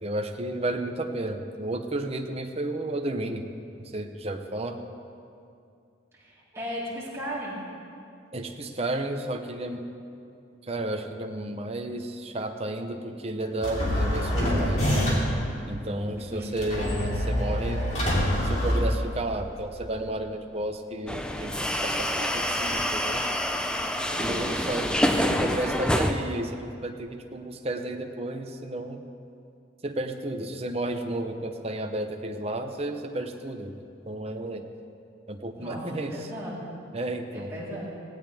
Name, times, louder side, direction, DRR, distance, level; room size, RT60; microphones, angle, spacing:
voice 1, 0.0-3.5 3.8-4.8 8.3-9.8 10.6-15.1 15.7-17.8 18.4-23.3 24.2-29.0 29.8-33.7 34.0-34.6 35.3-36.3 36.9-37.5, right 1 dB, 30° right, 5 dB, 0.8 m, -32 dB
voice 2, 6.1-7.6 16.2-16.5 35.6-35.8 36.1-36.7 37.3-38.0, equal, 15° right, -8 dB, 3.8 m, -36 dB
sound 1, 13.6-15.4 16.6-19.4, equal, 35° left, 3.1 m, -25 dB
sound 2, 21.1-26.1, equal, 5° left, 0.6 m, -27 dB
17.5 x 17.0 x 3.5 m, 2.5 s
head